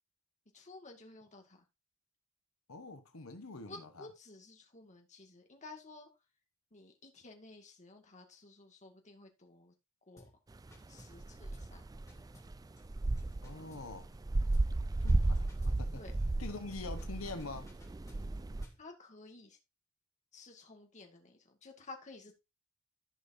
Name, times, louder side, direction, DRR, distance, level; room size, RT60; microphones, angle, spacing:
voice 1, 0.5-1.6 3.7-6.1 6.7-9.7 10.1-10.3 10.9-11.8 16.0-16.1 18.8-19.6 20.3-22.4, left 3 dB, 35° left, 2.0 m, -53 dB
voice 2, 2.7-4.1 13.4-14.1 15.0-16.0 16.4-17.7, left 3 dB, 80° left, 1.1 m, -45 dB
sound 1, 10.2-10.4 10.7-11.3 11.5-11.8 12.1-14.2 14.5-14.8 15.1-15.9 16.7-18.9, equal, 15° left, 2.9 m, -60 dB
sound 2, 10.5-18.7, right 2 dB, 20° right, 0.4 m, -34 dB
14.5 x 5.6 x 2.7 m
head